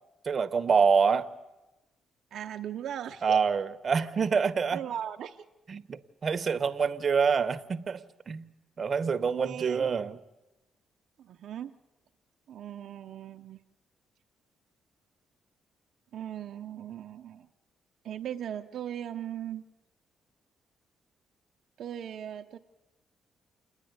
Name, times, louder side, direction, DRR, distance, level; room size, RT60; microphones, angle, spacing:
voice 1, 0.3-1.3 3.2-4.8 5.7-8.5 8.8-10.2, right 6 dB, 40° right, 0.9 m, -26 dB
voice 2, 2.3-3.4 4.7-5.5 9.3-9.9 11.2-11.7 12.5-13.6 16.1-17.5 18.0-19.6 21.8-22.6, right 10 dB, 70° right, 0.6 m, -38 dB
28.0 x 9.9 x 9.3 m
cardioid pair, 90°, 0 cm